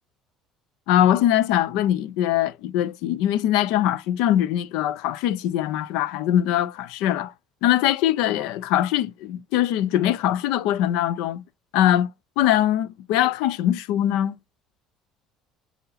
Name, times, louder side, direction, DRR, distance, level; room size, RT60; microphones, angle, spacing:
voice 1, 0.9-7.3 7.6-11.4 11.7-14.4, left 12 dB, 80° left, 0.6 m, -22 dB
7.8 x 2.9 x 4.1 m
cardioid pair, 155°, 0 cm